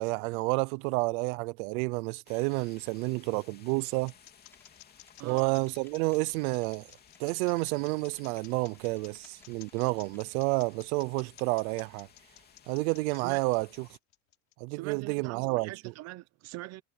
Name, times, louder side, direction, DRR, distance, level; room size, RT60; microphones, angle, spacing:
voice 1, 0.0-4.1 5.2-6.9 7.2-12.1 12.7-13.7 14.6-15.9, right 26 dB, 85° right, 0.8 m, -30 dB
sound 1, 2.3-14.0, left 7 dB, 25° left, 3.0 m, -59 dB
sound 2, 3.5-14.9, left 14 dB, 40° left, 7.0 m, -54 dB
sound 3, 4.5-10.3, left 2 dB, 5° left, 3.4 m, -61 dB
voice 2, 5.2-5.5 13.2-13.4 14.7-16.8, right 18 dB, 40° right, 0.9 m, -42 dB
cardioid pair, 175°, 41 cm